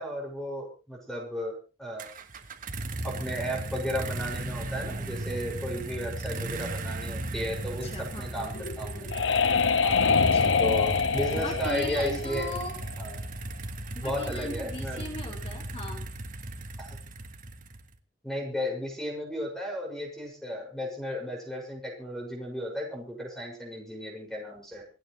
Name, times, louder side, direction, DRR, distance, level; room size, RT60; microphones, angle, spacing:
voice 1, 0.0-2.1 3.0-9.1 9.8-10.0 10.6-12.6 13.0-13.2 14.0-15.0 16.8-17.0 18.2-24.9, equal, ahead, 0 dB, 6.6 m, -34 dB
sound 1, 2.0-18.0, right 2 dB, 45° right, 1.6 m, -36 dB
voice 2, 7.8-8.6 10.1-10.6 11.4-12.8 13.9-16.0, left 1 dB, 30° left, 1 dB, 4.0 m, -39 dB
sound 2, 8.5-13.1, left 5 dB, 75° left, 0.8 m, -25 dB
28.5 x 9.6 x 3.3 m, 0.33 s
head